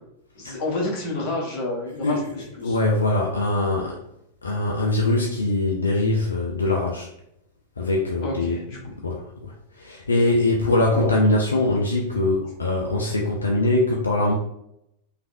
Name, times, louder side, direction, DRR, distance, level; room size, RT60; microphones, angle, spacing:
voice 1, 0.4-2.8 8.2-8.8 10.9-11.2, left 2 dB, 40° left, -3 dB, 1.1 m, -29 dB
voice 2, 2.6-4.0 4.4-7.1 7.8-8.6 9.0-9.2 9.8-14.3, left 2 dB, 75° left, -1 dB, 0.4 m, -22 dB
3.2 x 2.4 x 2.5 m, 0.79 s
figure-of-eight pair, 90°, 0 cm